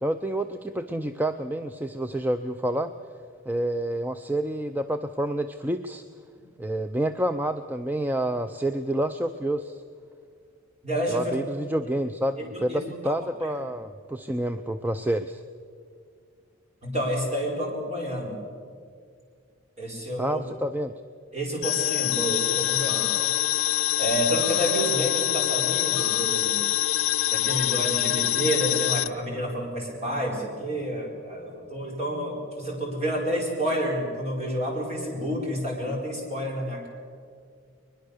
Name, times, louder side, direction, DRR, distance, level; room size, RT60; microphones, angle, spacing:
voice 1, 0.0-2.9 3.5-6.0 6.6-9.8 11.1-15.4 20.2-20.9, right 1 dB, 10° right, 9 dB, 0.5 m, -28 dB
voice 2, 10.8-11.4 12.4-13.1 13.4-13.6 16.8-18.3 19.8-20.4 21.3-23.1 24.0-26.7 27.3-36.9, equal, 30° right, -1 dB, 4.6 m, -29 dB
sound 1, 21.6-29.1, left 13 dB, 75° left, 0.7 m, -25 dB
22.0 x 22.0 x 6.7 m, 2.2 s
head